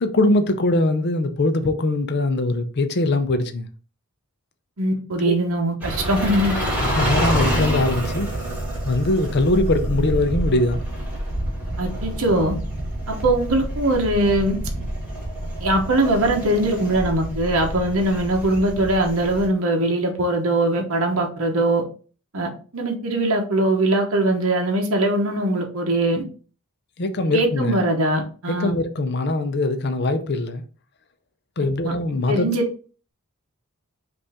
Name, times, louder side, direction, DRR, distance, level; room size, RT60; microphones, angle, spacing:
voice 1, 0.0-3.7 5.2-5.3 6.8-8.3 8.8-10.8 27.0-27.8 28.5-30.6 31.6-32.5, left 2 dB, 50° left, 0.6 m, -22 dB
voice 2, 4.8-6.6 11.8-12.5 13.1-14.6 15.6-21.8 22.3-26.2 27.3-28.7 31.8-31.9 32.3-32.6, right 1 dB, 65° right, 1.0 m, -21 dB
sound 1, 5.8-19.5, right 1 dB, 10° right, 1.8 m, -27 dB
5.2 x 2.6 x 3.5 m
head